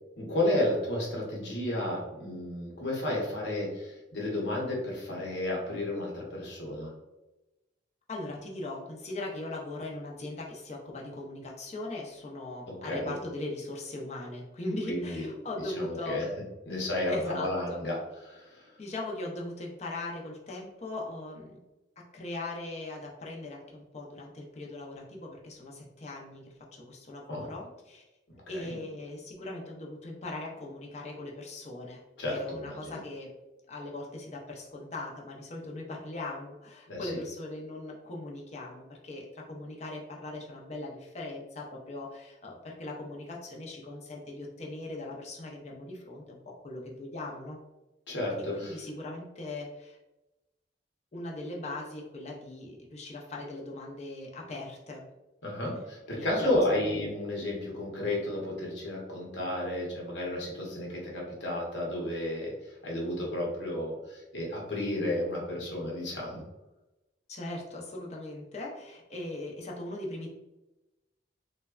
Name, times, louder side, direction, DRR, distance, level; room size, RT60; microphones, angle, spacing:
voice 1, 0.2-6.9 12.8-13.1 14.9-15.3 15.6-16.4 16.7-18.0 18.2-18.7 27.3-27.5 28.5-28.8 32.2-33.0 36.9-37.2 48.1-48.8 55.4-66.4, left 1 dB, 70° left, -2 dB, 0.9 m, -32 dB
voice 2, 8.1-16.2 17.1-17.8 18.8-21.6 22.0-28.0 28.5-33.3 33.7-47.6 48.6-50.0 51.1-55.0 56.1-56.5 56.8-56.9 67.3-70.3, left 2 dB, 35° left, -1 dB, 0.5 m, -39 dB
3.2 x 2.1 x 2.3 m, 1.0 s
head